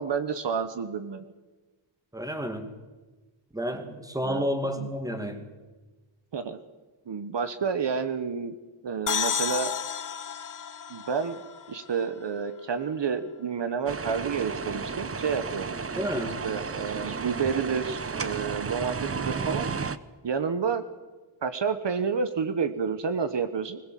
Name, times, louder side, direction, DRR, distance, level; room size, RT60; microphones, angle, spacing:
voice 1, 0.0-1.3 4.2-4.4 4.8-4.9 6.3-6.6 7.1-8.5 8.8-9.7 10.9-11.4 11.7-15.8 16.4-19.7 20.2-20.8 21.4-23.8, right 6 dB, 60° right, 10 dB, 1.2 m, -29 dB
voice 2, 2.1-2.7 3.5-5.4 16.0-16.4, equal, 5° right, 6 dB, 2.2 m, -30 dB
sound 1, 9.1-12.6, left 7 dB, 40° left, 0.7 m, -32 dB
sound 2, 13.9-20.0, right 5 dB, 30° right, 0.7 m, -33 dB
21.0 x 20.5 x 7.6 m, 1.2 s
wide cardioid pair, 175°, 49 cm